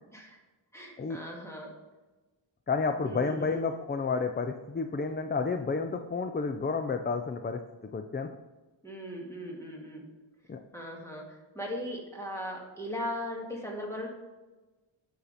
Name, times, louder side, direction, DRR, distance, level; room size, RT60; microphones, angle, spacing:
voice 1, 0.7-1.7 3.1-3.7 8.8-10.1 10.7-14.1, equal, 5° left, -1 dB, 1.8 m, -38 dB
voice 2, 2.7-7.6 7.9-8.3 10.5-10.6, left 4 dB, 25° left, 6 dB, 0.4 m, -30 dB
8.7 x 5.7 x 4.0 m, 1.2 s
wide cardioid pair, 140°, 46 cm